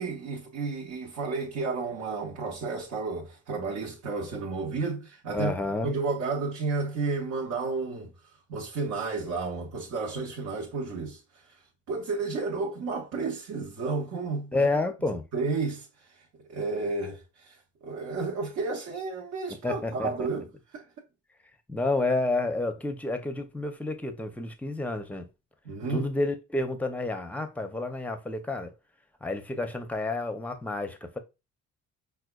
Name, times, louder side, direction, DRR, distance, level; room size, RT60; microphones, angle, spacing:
voice 1, 0.0-5.5 5.8-8.1 8.5-11.6 11.9-14.6 15.3-20.5 20.7-20.9 25.6-26.1, right 4 dB, 70° right, 0.9 m, -32 dB
voice 2, 5.3-5.9 14.5-15.3 19.6-20.1 21.7-25.3 25.9-28.7 29.2-31.2, left 2 dB, 5° left, 0.5 m, -30 dB
4.8 x 2.3 x 2.2 m
cardioid pair, 90°, 30 cm